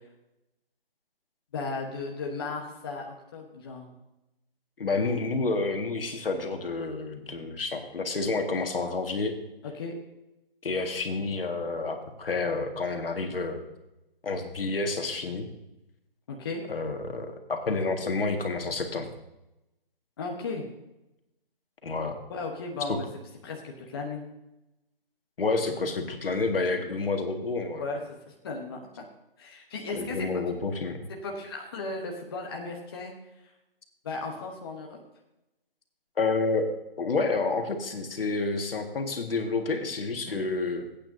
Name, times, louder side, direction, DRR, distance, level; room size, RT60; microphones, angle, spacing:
voice 1, 1.5-3.9 9.6-9.9 16.3-16.6 20.2-20.7 22.3-23.1 23.4-24.2 27.8-28.9 29.4-30.3 31.1-33.1 34.0-35.0 40.2-40.4, left 3 dB, 25° left, 0 dB, 1.1 m, -35 dB
voice 2, 4.8-9.4 10.6-13.6 14.2-15.5 16.7-19.1 21.8-22.2 22.9-23.0 25.4-27.8 29.9-31.1 36.2-36.7 37.0-40.9, left 3 dB, 70° left, 4 dB, 1.9 m, -29 dB
21.5 x 8.8 x 2.7 m, 0.93 s
hypercardioid pair, 165°, 29 cm